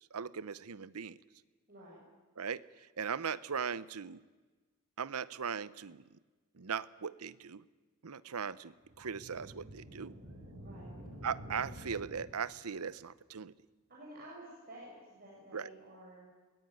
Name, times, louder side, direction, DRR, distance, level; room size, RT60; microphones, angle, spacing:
voice 1, 0.1-1.2 2.4-4.2 5.0-6.0 6.5-7.6 8.0-10.2 11.2-13.5 15.5-15.7, right 6 dB, 90° right, 17 dB, 0.8 m, -39 dB
voice 2, 1.7-2.0 10.6-11.0 13.9-16.3, right 1 dB, 40° right, -5 dB, 6.9 m, -52 dB
sound 1, 8.8-12.7, right 1 dB, 65° right, 7.1 m, -49 dB
22.5 x 20.0 x 9.6 m, 1.3 s
head